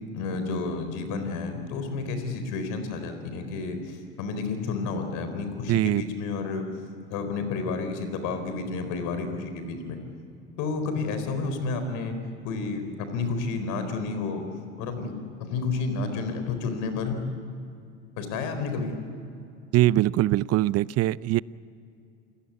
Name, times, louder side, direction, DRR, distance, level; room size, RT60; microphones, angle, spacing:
voice 1, 0.1-6.6 7.1-10.0 10.6-12.2 12.4-14.4 14.8-15.1 15.4-17.3 18.2-19.0, left 4 dB, 65° left, 8 dB, 4.4 m, -30 dB
voice 2, 5.7-6.0 19.7-21.4, right 15 dB, 45° right, 21 dB, 0.6 m, -22 dB
28.5 x 17.5 x 8.5 m, 2.6 s
hypercardioid pair, 70°, 33 cm